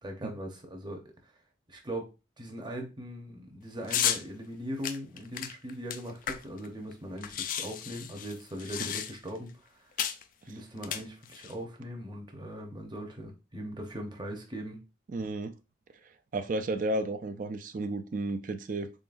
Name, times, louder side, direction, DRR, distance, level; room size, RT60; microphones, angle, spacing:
voice 1, 0.0-1.3 1.7-2.1 2.4-9.9 10.5-14.8, equal, 25° right, 0.8 m, -40 dB
sound 1, 3.9-4.2 4.8-6.7 6.9-7.0 7.2-9.4 10.0-10.2 10.8-11.5, left 9 dB, 45° left, 0.3 m, -33 dB
voice 2, 15.1-15.5 16.0-18.9, right 2 dB, 45° right, 0.4 m, -33 dB
3.8 x 3.7 x 2.5 m
head